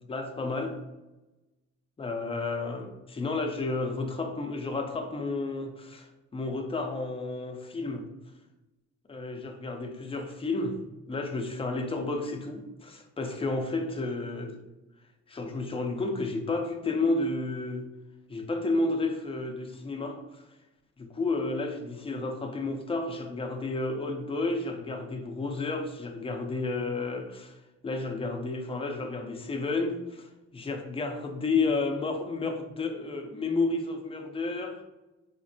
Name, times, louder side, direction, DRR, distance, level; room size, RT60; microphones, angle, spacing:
voice 1, 0.1-0.8 2.0-6.1 6.3-8.0 9.1-10.8 11.1-14.6 15.3-17.8 18.3-20.2 21.0-27.5 27.8-30.3 30.5-34.8, left 3 dB, 20° left, 4 dB, 0.5 m, -31 dB
4.3 x 2.0 x 2.6 m, 1.1 s
cardioid pair, 90°, 30 cm